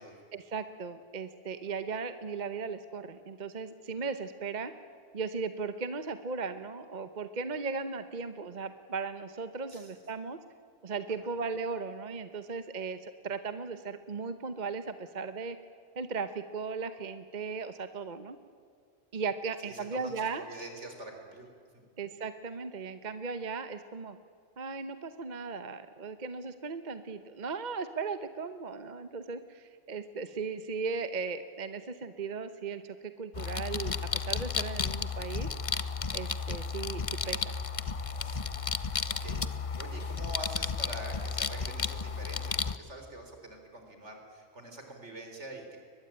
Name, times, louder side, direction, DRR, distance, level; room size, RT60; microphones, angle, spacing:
voice 1, 0.3-4.7 5.1-10.4 10.8-15.6 16.0-18.4 19.1-20.4 22.0-24.2 24.6-35.5 36.1-37.6, right 4 dB, 40° right, 11 dB, 1.1 m, -37 dB
voice 2, 19.6-21.5 39.0-39.4 39.8-45.8, right 1 dB, 75° right, 4 dB, 4.4 m, -45 dB
sound 1, 33.3-42.8, left 5 dB, 35° left, 0.7 m, -33 dB
23.0 x 20.5 x 9.0 m, 2.3 s
omnidirectional pair, 1.2 m